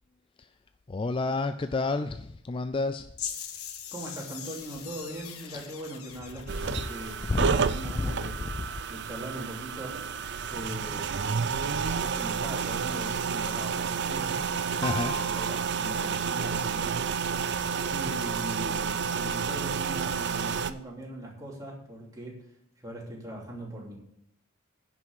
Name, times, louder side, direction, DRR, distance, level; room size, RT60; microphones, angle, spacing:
voice 1, 0.9-3.1 7.3-7.5 8.0-8.1 14.8-15.2, left 3 dB, 25° left, 9 dB, 0.3 m, -29 dB
sound 1, 3.2-7.2, left 8 dB, 85° left, 1.3 m, -41 dB
voice 2, 3.9-8.4 8.9-10.0 10.5-14.5 14.7-17.6 17.9-22.5 22.8-24.0, right 1 dB, 15° right, -3 dB, 3.0 m, -41 dB
sound 2, 6.5-20.7, right 6 dB, 55° right, 0.5 m, -30 dB
Gong, 14.8-18.3, right 3 dB, 70° right, 1.9 m, -40 dB
10.5 x 6.1 x 7.9 m, 0.74 s
head